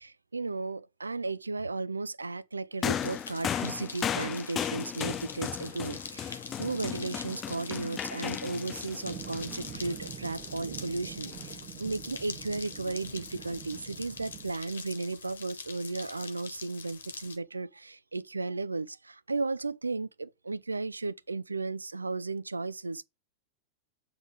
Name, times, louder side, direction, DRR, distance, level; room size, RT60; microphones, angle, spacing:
voice 1, 0.0-23.0, right 3 dB, 80° right, 0.4 m, -35 dB
sound 1, 2.8-17.4, left 5 dB, 70° left, 1.1 m, -44 dB
sound 2, 2.8-10.3 11.3-11.5, left 9 dB, 25° left, 0.3 m, -36 dB
sound 3, 9.0-14.5, right 11 dB, 40° right, 1.0 m, -45 dB
7.9 x 3.3 x 6.0 m
figure-of-eight pair, 90°, 0 cm